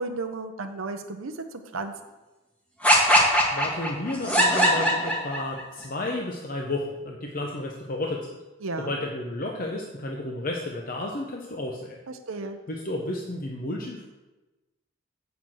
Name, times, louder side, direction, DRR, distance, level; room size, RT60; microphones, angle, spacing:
voice 1, 0.0-1.4 1.7-1.9 8.6-9.0 12.3-12.6, right 3 dB, 85° right, 6 dB, 0.7 m, -33 dB
sound 1, 2.8-5.6, equal, 5° left, 1.4 m, -20 dB
voice 2, 3.0-8.3 8.9-12.0 12.7-14.1, left 2 dB, 45° left, 0 dB, 0.8 m, -32 dB
7.1 x 5.9 x 7.5 m, 1.1 s
head